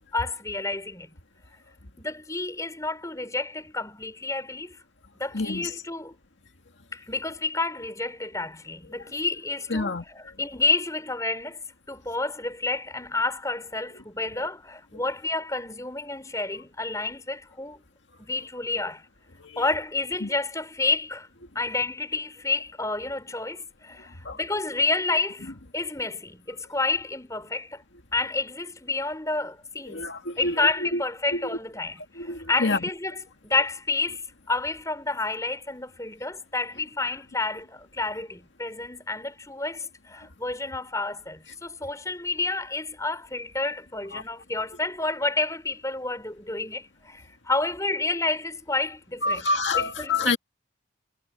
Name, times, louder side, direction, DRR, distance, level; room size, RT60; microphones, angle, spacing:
voice 1, 0.1-1.1 2.0-4.8 5.2-6.1 6.9-11.6 11.9-17.8 18.2-19.1 19.6-21.3 21.5-27.8 28.1-30.0 30.4-33.1 33.4-49.4 49.7-50.1, left 3 dB, 15° left, 5.1 m, -30 dB
voice 2, 5.3-5.8 9.0-9.1 9.7-10.4 14.4-14.5 19.4-19.6 20.2-20.3 24.0-24.4 29.9-31.0 31.3-31.4 32.1-32.8 40.2-40.3 44.1-44.2 49.2-50.4, left 3 dB, 75° left, 2.0 m, -28 dB
head